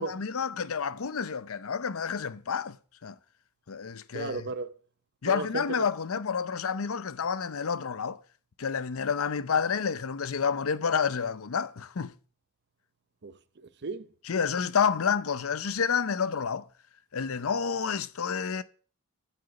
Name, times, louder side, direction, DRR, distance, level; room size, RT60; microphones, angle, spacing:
voice 1, 0.0-2.8 3.0-3.1 3.7-4.4 5.2-8.2 8.6-12.1 14.3-16.7 17.1-18.6, left 6 dB, 65° left, 0.6 m, -29 dB
voice 2, 4.1-4.8 5.3-5.9 13.2-14.1, right 3 dB, 50° right, 0.8 m, -35 dB
8.2 x 7.7 x 7.0 m
head